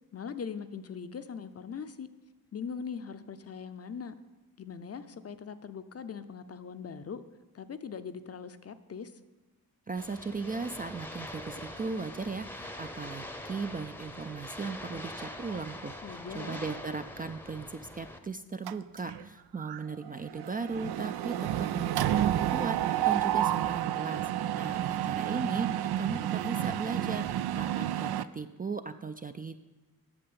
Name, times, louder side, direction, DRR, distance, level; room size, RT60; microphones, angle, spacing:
voice 1, 0.1-2.1 2.5-4.1 4.6-7.2 7.5-9.1 16.0-16.6, left 6 dB, 40° left, 11 dB, 0.6 m, -41 dB
voice 2, 9.9-24.3 24.6-27.3 27.6-29.6, right 4 dB, 25° right, 9 dB, 0.3 m, -37 dB
sound 1, 10.0-18.2, left 1 dB, 5° left, 0.7 m, -43 dB
Mechanisms, 18.7-19.3 19.6-19.8 20.1-28.2, right 12 dB, 90° right, 0.5 m, -30 dB
8.8 x 7.0 x 8.6 m, 1.2 s
wide cardioid pair, 140°, 37 cm